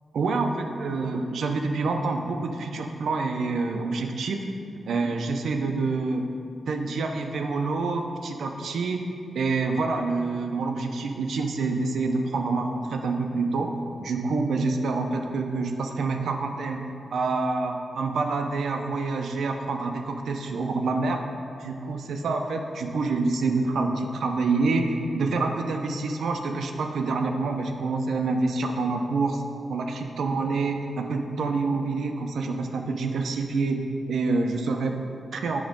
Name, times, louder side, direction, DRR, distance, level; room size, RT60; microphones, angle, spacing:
voice 1, 0.1-4.5 4.9-6.3 6.7-9.1 9.3-13.7 14.0-21.2 21.6-29.4 29.7-35.6, right 3 dB, 75° right, 4 dB, 0.5 m, -27 dB
7.2 x 3.0 x 5.1 m, 2.4 s
wide cardioid pair, 175°, 0 cm